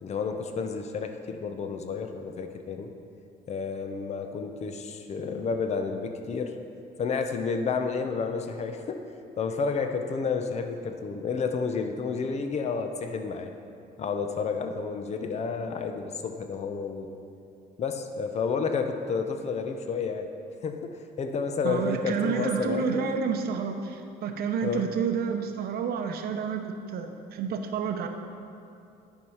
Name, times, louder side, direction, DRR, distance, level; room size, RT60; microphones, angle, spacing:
voice 1, 0.0-2.9 3.5-6.6 7.0-9.0 9.4-13.5 14.0-17.1 17.8-20.3 20.6-23.2 24.6-24.8, left 5 dB, 40° left, 6 dB, 0.7 m, -31 dB
voice 2, 21.6-26.6 26.9-28.1, right 6 dB, 65° right, 5 dB, 0.8 m, -29 dB
10.5 x 4.7 x 5.7 m, 2.6 s
cardioid pair, 110°, 17 cm